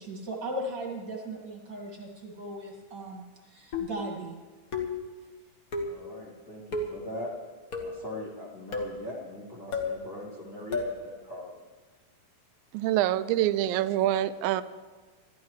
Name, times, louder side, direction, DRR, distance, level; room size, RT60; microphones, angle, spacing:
voice 1, 0.0-4.4, right 1 dB, 40° right, 0 dB, 2.0 m, -37 dB
sound 1, 3.7-4.1 4.7-5.1 5.7-6.0 6.7-7.0 7.7-8.1 8.7-9.0 9.7-10.0 10.7-11.0, left 3 dB, 65° left, 0.8 m, -32 dB
voice 2, 5.8-7.3 7.8-11.6, left 1 dB, 30° left, -5 dB, 2.2 m, -40 dB
voice 3, 12.7-14.6, right 13 dB, 85° right, 14 dB, 2.3 m, -25 dB
26.0 x 12.5 x 3.2 m, 1.4 s
omnidirectional pair, 4.1 m